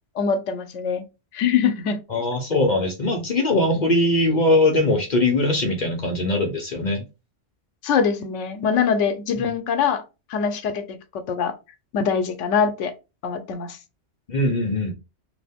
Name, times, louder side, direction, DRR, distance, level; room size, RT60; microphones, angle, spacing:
voice 1, 0.2-1.0 1.3-2.0 7.8-10.0 10.3-10.8 11.3-11.5 11.9-12.9 13.2-13.8, left 6 dB, 85° left, 1.0 m, -23 dB
voice 2, 2.1-7.0 14.3-14.9, left 2 dB, 45° left, 0.7 m, -21 dB
2.8 x 2.7 x 3.4 m
omnidirectional pair, 1.2 m